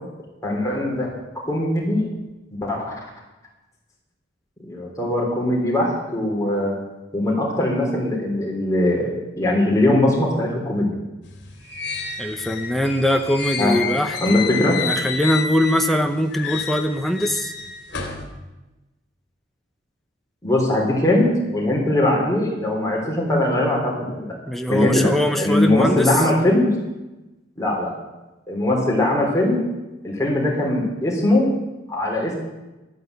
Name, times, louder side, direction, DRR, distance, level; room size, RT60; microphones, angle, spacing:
voice 1, 0.4-1.1 1.5-2.0 2.6-3.0 4.6-6.7 7.1-9.1 9.4-10.9 13.6-13.7 14.2-14.8 20.4-24.3 24.7-25.1 25.4-26.7 27.6-27.9 28.5-29.6 30.0-31.5 31.9-32.3, left 1 dB, 15° left, -2 dB, 3.6 m, -20 dB
sound 1, 11.3-16.0 16.3-18.2, left 5 dB, 60° left, 2.6 m, -30 dB
voice 2, 12.2-17.5 24.5-26.1, equal, ahead, 5 dB, 0.8 m, -22 dB
12.5 x 9.4 x 8.1 m, 1.1 s
head